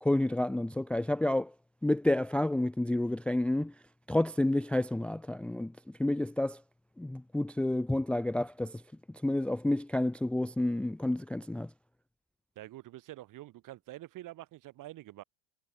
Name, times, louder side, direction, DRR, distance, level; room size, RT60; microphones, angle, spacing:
voice 1, 0.0-1.5 1.8-3.7 4.1-5.7 6.0-6.6 7.0-8.8 9.2-11.7, left 1 dB, 5° left, 0.5 m, -29 dB
voice 2, 12.5-15.2, right 15 dB, 55° right, 3.3 m, -46 dB
supercardioid pair, 115°, 39 cm